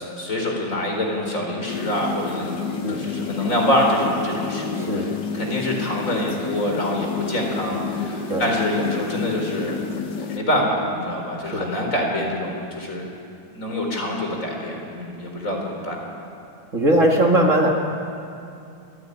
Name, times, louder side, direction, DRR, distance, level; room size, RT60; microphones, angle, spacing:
voice 1, 0.0-5.1 5.3-9.8 10.2-13.0 13.5-16.0, left 1 dB, 40° left, 0 dB, 4.4 m, -25 dB
sound 1, 1.7-10.4, left 5 dB, 70° left, 1.8 m, -30 dB
voice 2, 4.8-5.1 8.3-8.4 11.4-11.9 16.7-17.7, right 1 dB, 40° right, 1 dB, 2.1 m, -20 dB
25.5 x 16.0 x 9.8 m, 2.6 s
omnidirectional pair, 2.1 m